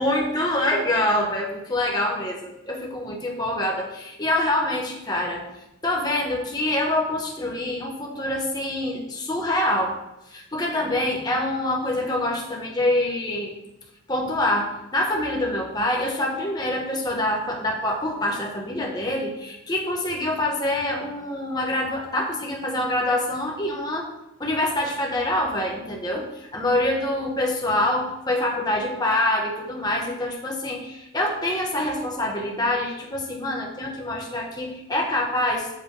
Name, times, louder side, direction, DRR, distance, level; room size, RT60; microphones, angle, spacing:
voice 1, 0.0-5.4 5.8-9.9 10.3-13.5 14.1-24.1 24.4-35.7, left 1 dB, 20° left, -1 dB, 1.1 m, -25 dB
7.4 x 3.5 x 5.3 m, 0.91 s
head